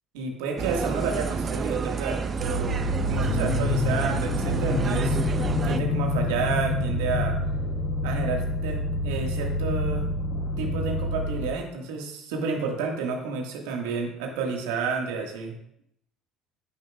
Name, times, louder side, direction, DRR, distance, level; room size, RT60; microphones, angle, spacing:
voice 1, 0.1-5.2 5.6-7.3 8.0-10.1 10.6-15.5, right 4 dB, 70° right, 2 dB, 1.7 m, -30 dB
sound 1, 0.6-5.8, right 5 dB, 35° right, 0.6 m, -29 dB
sound 2, 2.4-11.5, left 2 dB, 55° left, 2.9 m, -27 dB
11.0 x 9.5 x 2.4 m, 0.77 s
hypercardioid pair, 60°, 0 cm